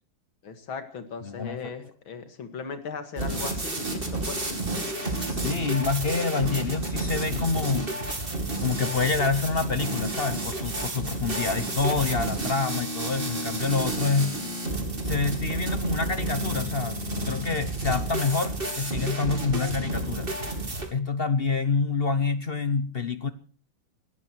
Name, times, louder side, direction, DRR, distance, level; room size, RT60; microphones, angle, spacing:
voice 1, 0.4-4.4, left 5 dB, 80° left, 8 dB, 2.9 m, -37 dB
voice 2, 1.2-1.7 5.0-7.9 8.6-14.4 15.0-17.0 17.2-20.3 20.9-23.3, left 4 dB, 45° left, 12 dB, 0.8 m, -27 dB
sound 1, 3.2-20.9, right 2 dB, 25° right, 3.0 m, -31 dB
19.5 x 16.0 x 4.6 m, 0.40 s
omnidirectional pair, 2.2 m